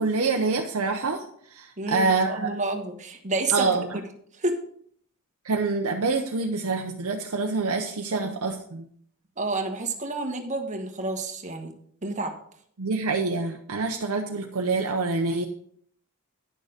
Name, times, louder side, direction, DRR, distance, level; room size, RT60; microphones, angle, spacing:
voice 1, 0.0-2.5 3.5-3.9 5.4-8.8 12.8-15.5, right 3 dB, 65° right, 3 dB, 0.8 m, -26 dB
voice 2, 1.8-4.0 4.3-4.6 8.1-8.4 9.4-11.7 12.0-12.3, right 2 dB, 35° right, 4 dB, 1.3 m, -29 dB
10.0 x 6.6 x 5.0 m, 0.64 s
head